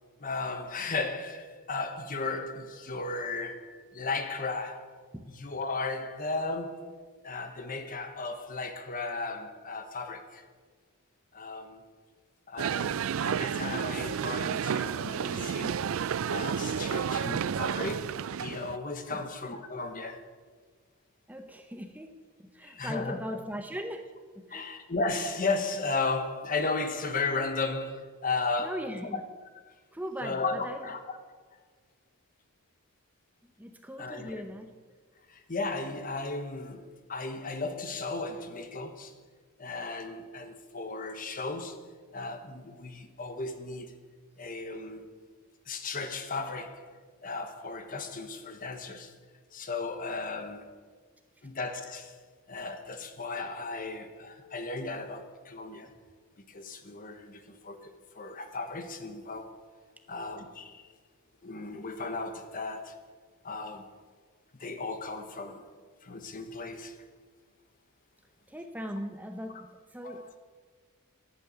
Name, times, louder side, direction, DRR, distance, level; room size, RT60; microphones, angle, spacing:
voice 1, 0.2-4.9 5.3-7.0 7.2-10.5 11.3-11.8 12.5-15.9 16.2-20.3 22.6-23.2 24.5-28.9 29.1-29.2 29.7-29.8 30.2-31.2 34.0-34.5 35.3-39.1 39.6-43.9 44.4-45.0 45.7-47.0 47.2-49.1 49.5-50.7 51.4-52.2 52.5-55.9 56.5-59.5 60.1-60.9 61.4-63.0 63.4-63.9 64.6-65.7 66.0-67.1 70.0-70.2, left 3 dB, 40° left, 1.1 m, -35 dB
sound 1, 12.6-18.8, right 7 dB, 65° right, 0.4 m, -31 dB
voice 2, 21.3-24.1 24.4-24.7 28.6-29.2 29.9-30.8 33.6-34.7 68.5-70.4, equal, 5° right, 0.8 m, -39 dB
11.5 x 8.4 x 8.9 m
head